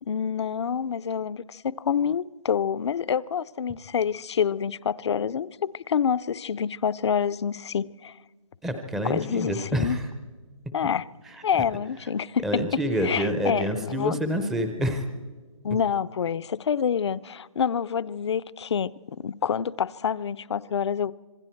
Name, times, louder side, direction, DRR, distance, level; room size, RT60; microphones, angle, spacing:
voice 1, 0.0-8.2 9.0-10.0 10.7-11.1 11.4-14.2 15.6-21.1, left 7 dB, 55° left, 0.5 m, -27 dB
voice 2, 8.6-10.0 12.4-15.0, equal, ahead, 0.5 m, -27 dB
26.0 x 22.0 x 4.5 m
hypercardioid pair, 160°, 17 cm